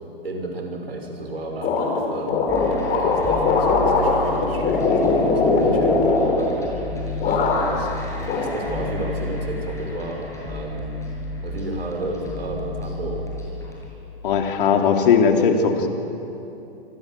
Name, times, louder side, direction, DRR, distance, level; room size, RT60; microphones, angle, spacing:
voice 1, 0.2-2.6 2.9-6.5 7.2-11.0 11.4-13.3, right 2 dB, 85° right, 2 dB, 6.6 m, -32 dB
sound 1, 1.6-6.9 7.2-7.9 8.3-9.1, left 3 dB, 30° left, 4.7 m, -21 dB
sound 2, 2.5-13.9, left 2 dB, 10° left, 7.6 m, -32 dB
voice 2, 14.2-15.9, left 6 dB, 60° left, 3 dB, 3.7 m, -18 dB
26.5 x 24.5 x 7.9 m, 2.9 s
hypercardioid pair, 125°, 30 cm